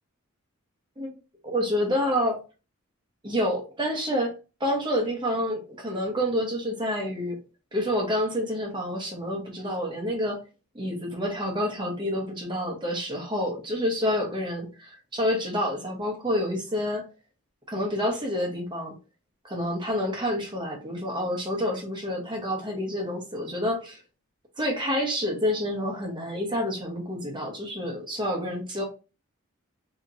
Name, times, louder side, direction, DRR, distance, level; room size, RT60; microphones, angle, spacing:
voice 1, 1.4-2.4 3.2-4.3 4.6-7.4 7.7-10.4 10.7-17.0 17.7-18.9 19.4-24.0 24.6-28.8, equal, 20° right, 0.8 m, -28 dB
2.9 x 2.8 x 2.5 m
head